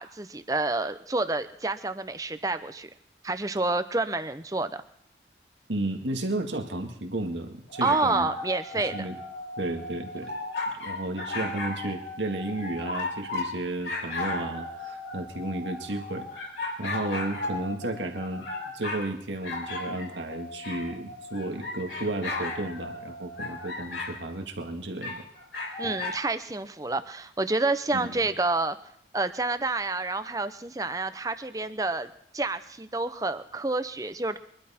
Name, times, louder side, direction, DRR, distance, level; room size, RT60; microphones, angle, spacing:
voice 1, 0.0-2.9 3.2-4.7 7.8-9.1 25.8-28.8 29.1-34.4, right 2 dB, 20° right, 11 dB, 0.7 m, -29 dB
voice 2, 5.7-8.3 8.7-9.2 9.6-10.3 10.7-18.5 18.7-25.3 25.8-26.0 27.9-28.1, right 2 dB, 85° right, 3 dB, 2.0 m, -33 dB
sound 1, 7.7-13.5 13.8-19.1 19.4-24.1 25.0-26.2, left 2 dB, 85° left, 4.0 m, -35 dB
23.0 x 12.0 x 4.4 m, 0.68 s
head